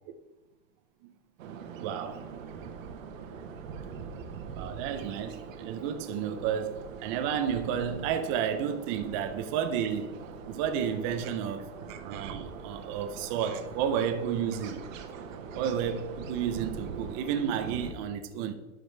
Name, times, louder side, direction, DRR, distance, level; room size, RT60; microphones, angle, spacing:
sound 1, 1.4-17.9, right 6 dB, 75° right, 1.1 m, -43 dB
voice 1, 1.8-2.2 4.5-10.2 10.5-14.8 15.5-18.5, right 8 dB, 30° right, 0.5 m, -31 dB
11.0 x 5.1 x 3.2 m
supercardioid pair, 155°, 40 cm